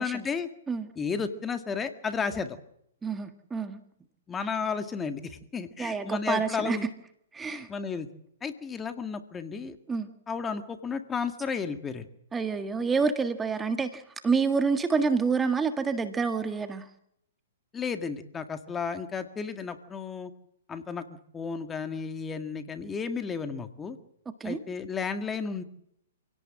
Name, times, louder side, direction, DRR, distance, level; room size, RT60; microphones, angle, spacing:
voice 1, 0.0-0.5 1.0-2.6 4.3-6.9 7.7-8.1 8.4-9.8 10.3-12.1 17.7-20.3 20.7-21.0 21.3-24.0 24.4-25.6, left 5 dB, 15° left, 9 dB, 2.0 m, -33 dB
voice 2, 3.0-3.8 5.8-6.8 7.3-7.7 9.9-10.1 12.3-16.9 24.4-24.6, right 5 dB, 10° right, 8 dB, 1.7 m, -28 dB
27.5 x 17.5 x 7.7 m, 0.74 s
hypercardioid pair, 130°, 0 cm